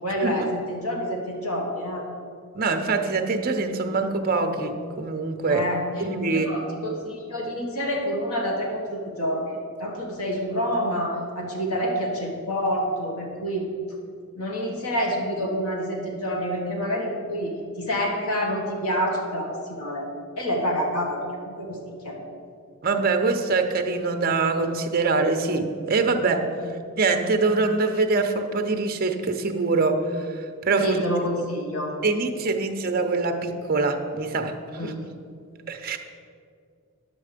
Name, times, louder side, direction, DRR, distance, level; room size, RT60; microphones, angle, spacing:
voice 1, 0.0-2.0 5.5-5.8 6.3-13.7 14.3-20.1 20.4-22.2 26.6-26.7 30.8-32.0 34.7-35.0, equal, 85° left, 0 dB, 1.7 m, -28 dB
voice 2, 2.5-5.7 6.0-6.5 22.8-26.5 27.0-31.0 32.0-34.5 34.8-34.9 35.7-36.0, right 3 dB, 40° right, 6 dB, 0.7 m, -24 dB
9.8 x 7.8 x 5.1 m, 2.3 s
head